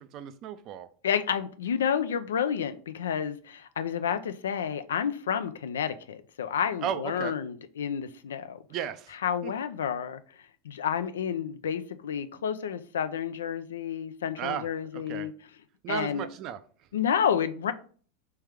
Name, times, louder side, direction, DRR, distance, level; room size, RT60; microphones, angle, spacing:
voice 1, 0.0-0.9 6.8-7.3 8.7-9.1 9.4-9.5 14.4-14.7 14.9-15.3 15.8-16.6, right 9 dB, 45° right, 11 dB, 0.5 m, -34 dB
voice 2, 1.0-8.6 9.2-10.2 10.6-15.3 15.9-16.3 16.9-17.7, left 8 dB, 90° left, 11 dB, 0.4 m, -30 dB
3.3 x 3.2 x 3.5 m, 0.43 s
hypercardioid pair, 110°, 0 cm